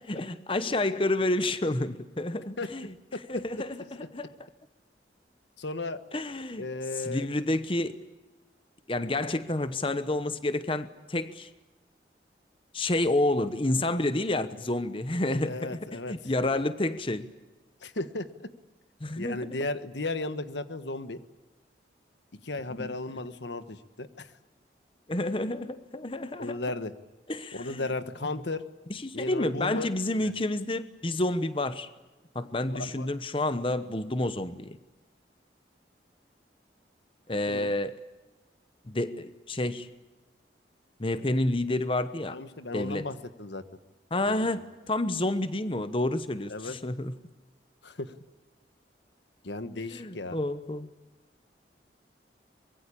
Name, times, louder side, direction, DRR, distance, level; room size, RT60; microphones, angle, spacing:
voice 1, 0.1-2.9 3.3-3.8 4.1-4.3 6.1-6.7 7.0-8.0 8.9-11.5 12.7-15.8 16.1-17.3 19.0-19.6 22.8-22.9 25.1-26.7 27.3-27.9 28.9-31.9 32.3-34.8 37.3-38.0 38.9-39.9 41.0-42.4 42.7-43.1 44.1-47.2 49.9-50.9, left 2 dB, 30° left, 12 dB, 1.0 m, -29 dB
voice 2, 5.6-6.0 6.6-7.3 15.4-16.1 17.8-18.5 19.2-21.2 22.4-24.3 26.4-26.9 27.5-28.6 29.1-29.9 30.2-30.3 32.7-33.1 37.5-37.7 42.3-43.6 44.3-44.5 46.5-46.8 47.8-48.1 49.4-50.4, left 2 dB, 80° left, 12 dB, 1.4 m, -35 dB
24.5 x 22.5 x 8.6 m, 1.1 s
head